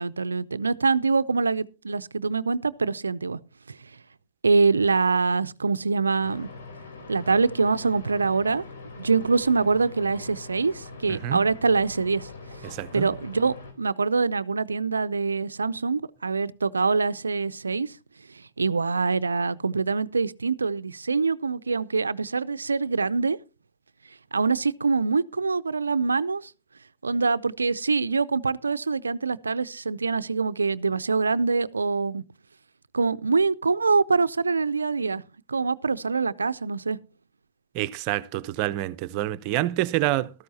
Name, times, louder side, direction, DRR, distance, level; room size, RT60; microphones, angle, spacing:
voice 1, 0.0-3.4 3.7-3.8 4.4-6.5 7.1-8.6 9.0-12.3 12.9-17.9 18.4-23.4 24.3-26.5 27.0-32.2 32.9-35.2 35.5-37.0, right 4 dB, 90° right, 0.5 m, -24 dB
sound 1, 6.2-13.7, left 3 dB, 70° left, 3.4 m, -42 dB
voice 2, 11.1-11.5 12.6-13.1 37.7-40.3, right 15 dB, 45° right, 0.7 m, -27 dB
14.0 x 13.5 x 2.7 m
hypercardioid pair, 115°, 0 cm